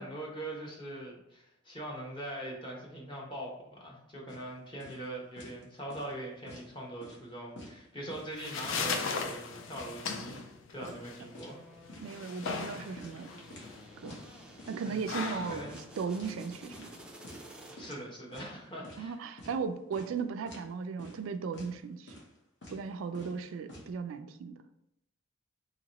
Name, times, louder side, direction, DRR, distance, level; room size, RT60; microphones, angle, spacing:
voice 1, 0.0-11.6 14.8-15.2 15.5-15.7 17.8-19.2, right 1 dB, 25° left, -3 dB, 0.9 m, -42 dB
sound 1, 4.3-4.5 4.8-5.0 5.4-5.6 5.9-6.7 7.0-7.2 7.6-8.3 8.6-8.9 9.2-10.5 10.8-11.0 11.3-11.6 11.9-12.1 12.4-13.7 14.0-14.2 14.6-14.8 15.1-15.4 15.6-16.4 16.7-16.9 17.2-17.5 17.8-18.0 18.3-19.0 19.4-19.6 19.9-20.2 20.5-20.7 21.0-21.2 21.5-21.7 22.1-22.4 22.6-22.8 23.1-23.9, left 1 dB, 60° left, 1.0 m, -49 dB
sound 2, 8.1-17.1, left 5 dB, 75° left, 0.4 m, -39 dB
sound 3, 11.3-18.2, right 1 dB, 5° right, 0.4 m, -53 dB
voice 2, 12.0-13.3 14.0-14.2 14.7-16.9 19.0-22.1 22.7-24.6, right 5 dB, 85° right, 9 dB, 0.3 m, -36 dB
2.9 x 2.9 x 4.0 m, 0.79 s
head